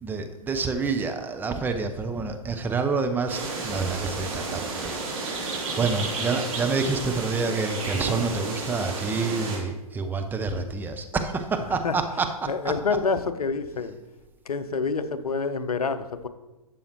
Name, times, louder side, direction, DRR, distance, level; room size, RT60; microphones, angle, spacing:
voice 1, 0.0-12.3, right 4 dB, 10° right, 5 dB, 0.6 m, -28 dB
sound 1, 3.3-9.6, right 3 dB, 60° right, 3.4 m, -32 dB
voice 2, 11.6-12.0 12.5-14.0 14.5-16.3, left 4 dB, 75° left, 12 dB, 0.7 m, -27 dB
12.0 x 7.1 x 3.0 m, 1.0 s
figure-of-eight pair, 110°, 19 cm